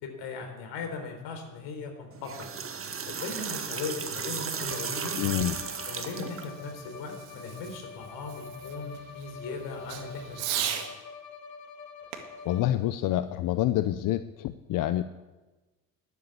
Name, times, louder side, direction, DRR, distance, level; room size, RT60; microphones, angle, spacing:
voice 1, 0.0-2.5 3.1-5.2 5.9-10.8, left 4 dB, 60° left, 5 dB, 4.1 m, -38 dB
sound 1, 2.1-6.4, right 6 dB, 25° right, 1.7 m, -35 dB
Fireworks, 3.8-10.9 12.1-13.7, right 10 dB, 60° right, 2.2 m, -40 dB
Bowed string instrument, 4.7-12.9, left 5 dB, 90° left, 1.6 m, -45 dB
voice 2, 5.2-5.6 12.5-15.0, left 13 dB, 40° left, 13 dB, 0.7 m, -27 dB
13.0 x 9.8 x 8.5 m, 1.2 s
hypercardioid pair, 75°, 48 cm